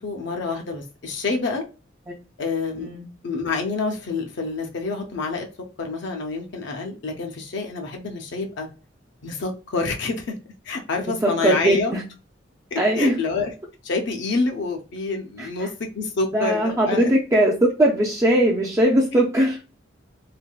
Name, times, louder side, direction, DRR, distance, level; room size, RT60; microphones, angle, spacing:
voice 1, 0.0-1.7 2.4-2.9 3.2-5.5 5.8-8.7 9.2-10.3 10.7-11.9 12.7-13.5 13.8-17.1, left 3 dB, 65° left, 3 dB, 0.5 m, -27 dB
voice 2, 11.2-12.0 12.8-13.2 15.4-15.7 16.3-19.6, right 1 dB, 15° right, -2 dB, 0.3 m, -20 dB
3.4 x 2.2 x 2.2 m, 0.33 s
head